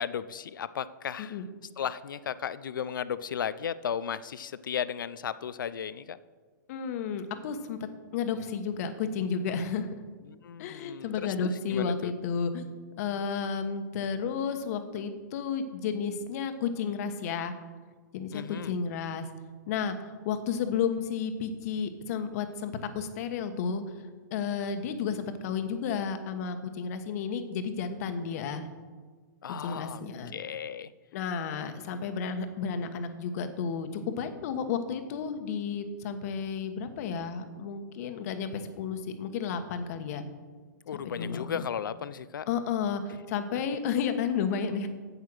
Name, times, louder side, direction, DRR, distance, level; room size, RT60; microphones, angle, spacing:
voice 1, 0.0-1.4 1.8-6.2 10.2-12.1 18.3-18.7 29.4-30.0 30.3-30.9 31.6-32.1 40.9-42.5 43.1-43.2, left 8 dB, 85° left, 16 dB, 0.5 m, -35 dB
voice 2, 6.7-7.8 8.1-9.9 10.6-12.7 13.0-17.5 18.1-19.3 19.7-23.8 24.3-28.7 29.6-30.3 31.1-40.2 41.0-41.6 42.5-43.0 43.3-44.9, left 6 dB, 50° left, 8 dB, 1.2 m, -32 dB
9.0 x 8.1 x 6.2 m, 1.4 s
hypercardioid pair, 135°, 11 cm